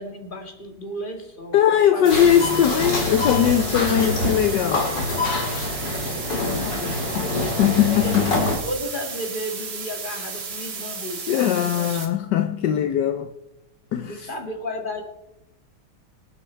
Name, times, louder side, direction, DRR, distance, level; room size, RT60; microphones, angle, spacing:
voice 1, 0.0-2.9 5.9-7.5 8.0-12.1 14.0-15.0, left 1 dB, 25° left, 2.1 m, -34 dB
voice 2, 1.5-5.0 7.1-8.3 11.3-13.3 13.9-14.3, left 10 dB, 70° left, 1.1 m, -20 dB
sound 1, 2.1-8.6, left 2 dB, 55° left, 3.2 m, -25 dB
sound 2, 2.1-12.1, right 5 dB, 60° right, 2.6 m, -34 dB
25.0 x 8.3 x 4.5 m
omnidirectional pair, 2.4 m